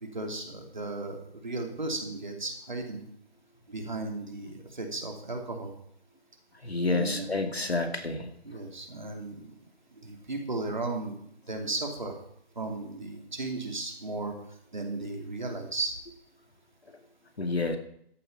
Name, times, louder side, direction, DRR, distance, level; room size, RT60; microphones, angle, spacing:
voice 1, 0.0-3.0 3.7-5.7 6.8-7.4 8.4-9.5 10.0-11.2 11.5-12.2 12.6-14.3 14.7-16.0, right 2 dB, 45° right, 2 dB, 2.8 m, -35 dB
voice 2, 6.6-8.3 17.4-17.8, left 3 dB, 80° left, 5 dB, 2.6 m, -29 dB
13.5 x 8.6 x 5.9 m, 0.69 s
figure-of-eight pair, 175°, 31 cm